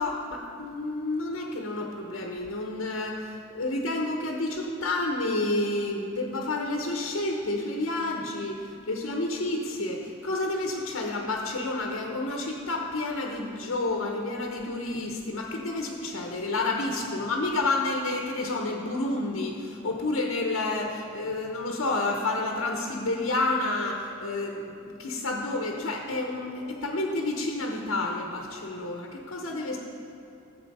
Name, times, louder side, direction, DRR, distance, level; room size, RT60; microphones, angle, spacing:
voice 1, 0.0-29.8, left 2 dB, 85° left, 1 dB, 1.0 m, -30 dB
12.5 x 7.7 x 5.5 m, 2.8 s
head